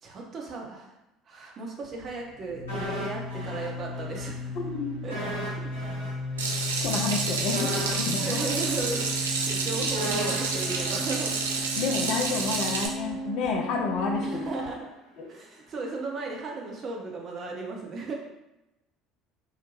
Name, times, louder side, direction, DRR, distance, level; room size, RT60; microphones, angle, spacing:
voice 1, 0.0-1.0 1.3-2.6 3.0-4.5 5.0-5.1 8.2-11.3 14.2-14.9 15.3-18.1, right 3 dB, 40° right, 0 dB, 0.7 m, -35 dB
sound 1, 1.8-14.7, left 1 dB, 35° left, 1.1 m, -35 dB
sound 2, 2.7-4.3 4.6-4.7 5.1-12.2 12.5-12.6, equal, 85° left, 0.8 m, -37 dB
voice 2, 4.6-5.0 6.8-8.4 9.7-9.8 11.8-14.4 15.2-15.3, left 4 dB, 55° left, 2 dB, 0.4 m, -30 dB
Water tap faucet / Sink (filling or washing), 6.4-12.9, right 4 dB, 80° right, 0.3 m, -29 dB
2.7 x 2.1 x 3.0 m, 0.93 s
figure-of-eight pair, 60°, 0 cm